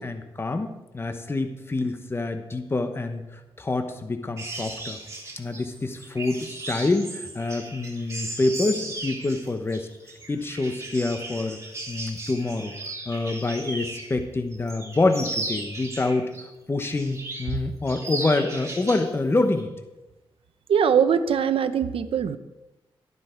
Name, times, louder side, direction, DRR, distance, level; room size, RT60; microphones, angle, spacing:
voice 1, 0.0-5.0 5.4-9.9 10.3-11.6 11.9-12.7 13.1-19.7, left 2 dB, 25° left, 7 dB, 1.1 m, -26 dB
sound 1, 4.4-14.2 14.5-16.4 16.8-17.6 17.9-19.1 19.4-19.6, right 2 dB, 30° right, 3.7 m, -36 dB
voice 2, 20.7-22.4, right 7 dB, 75° right, 11 dB, 0.8 m, -21 dB
12.5 x 11.5 x 4.6 m, 1.0 s
wide cardioid pair, 100°, 9 cm